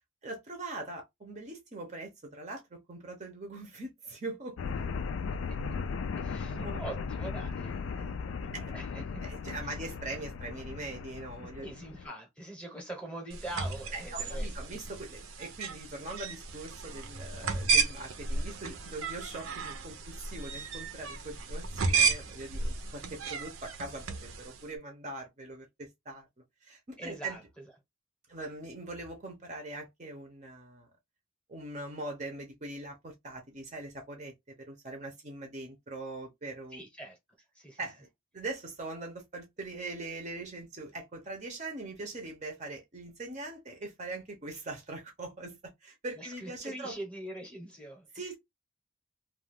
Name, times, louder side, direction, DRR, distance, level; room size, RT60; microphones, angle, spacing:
voice 1, 0.2-4.6 6.5-6.8 7.5-7.6 7.9-8.2 8.5-8.7 9.2-11.7 13.9-26.3 26.6-27.4 28.3-30.9 31.5-36.8 37.8-38.1 38.3-47.0 48.1-48.4, right 2 dB, 35° right, 0.6 m, -42 dB
sound 1, 4.6-12.0, left 5 dB, 65° left, 0.3 m, -37 dB
voice 2, 6.2-9.2 11.4-14.5 18.6-18.8 27.0-27.4 36.7-37.2 37.5-37.8 46.2-48.1, right 1 dB, 5° left, 0.8 m, -43 dB
sound 2, 13.3-24.6, right 4 dB, 75° right, 0.6 m, -33 dB
2.3 x 2.3 x 3.3 m
head